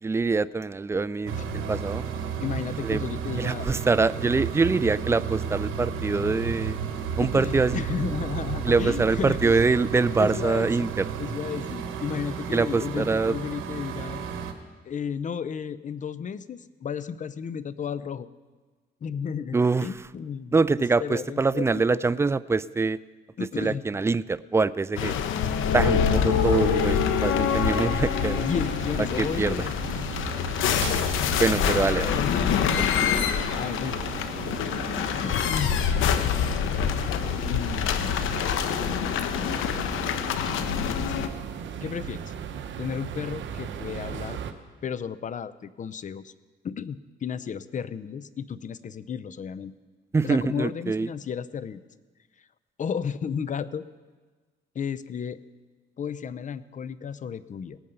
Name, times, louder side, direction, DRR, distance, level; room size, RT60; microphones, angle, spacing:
voice 1, 0.0-2.0 2.8-3.0 3.4-6.8 7.2-7.8 8.7-11.0 12.5-13.3 19.5-19.9 20.5-23.0 23.6-25.1 25.7-28.5 29.2-29.5 31.4-32.2 32.8-33.2 50.1-51.1, right 4 dB, 15° right, 18 dB, 0.3 m, -24 dB
sound 1, 1.3-14.5, right 7 dB, 90° right, 1.2 m, -32 dB
voice 2, 2.4-3.7 7.3-9.6 10.2-14.3 14.8-18.3 19.0-19.6 19.8-22.1 23.4-23.8 26.5-26.9 28.4-30.2 31.9-32.3 33.5-34.0 34.7-35.7 37.5-38.2 38.6-38.8 40.9-41.2 41.8-42.3 42.8-44.4 44.8-46.3 46.6-49.7 50.2-51.8 52.4-52.5 52.8-53.8 54.7-55.4 56.0-57.8, left 7 dB, 40° left, 16 dB, 0.6 m, -33 dB
sound 2, 25.0-41.3, left 8 dB, 85° left, 0.9 m, -26 dB
sound 3, 26.3-44.5, right 8 dB, 70° right, 0.9 m, -38 dB
18.5 x 8.7 x 5.4 m, 1.3 s
cardioid pair, 90°, 20 cm